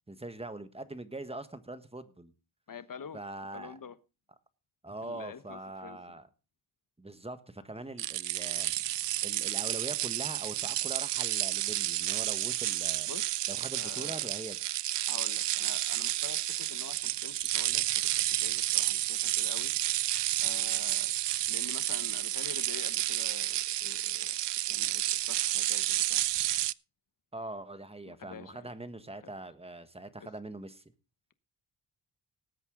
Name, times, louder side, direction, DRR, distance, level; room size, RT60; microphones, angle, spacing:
voice 1, 0.1-2.3 3.1-3.8 4.8-6.3 7.0-9.0 9.2-13.1 13.5-14.6 27.3-30.8, right 2 dB, 10° right, 11 dB, 1.4 m, -42 dB
voice 2, 2.7-3.2 3.5-4.0 5.0-6.0 13.1-13.3 13.7-14.3 15.1-19.7 20.4-21.1 21.5-24.3 24.7-26.2 28.1-28.7 29.2-29.3 30.2-30.3, left 7 dB, 45° left, 13 dB, 1.2 m, -47 dB
sound 1, 8.0-26.7, right 14 dB, 60° right, 0.5 m, -31 dB
19.5 x 8.2 x 3.8 m, 0.31 s
cardioid pair, 95°, 47 cm